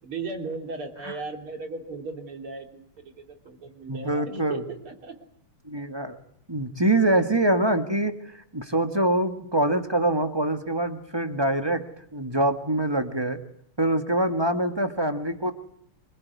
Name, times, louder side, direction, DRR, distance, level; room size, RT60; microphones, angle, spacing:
voice 1, 0.0-5.2 5.8-5.9 6.8-6.9, right 3 dB, 80° right, 4 dB, 4.1 m, -37 dB
voice 2, 3.9-4.6 5.6-6.2 6.5-11.8 12.1-13.4 13.8-15.5, right 1 dB, 15° right, 7 dB, 1.4 m, -24 dB
25.5 x 23.0 x 9.6 m, 0.70 s
omnidirectional pair, 2.4 m